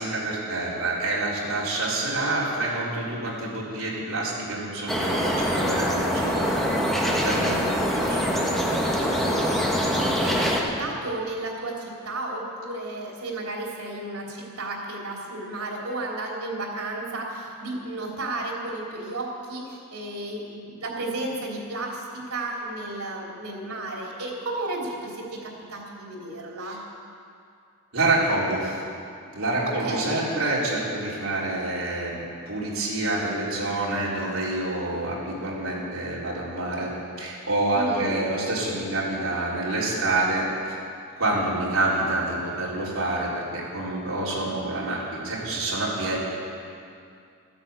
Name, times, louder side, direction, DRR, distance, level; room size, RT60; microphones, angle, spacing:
voice 1, 0.0-7.7 8.0-9.0 27.9-28.8 29.3-36.9 37.2-40.8 41.2-46.2, right 2 dB, 65° right, -6 dB, 4.1 m, -27 dB
sound 1, 4.9-10.6, equal, ahead, 1.4 m, -24 dB
voice 2, 10.0-26.8 29.7-30.3 37.7-38.1, right 2 dB, 85° right, -2 dB, 3.3 m, -33 dB
14.5 x 10.5 x 8.3 m, 2.4 s
head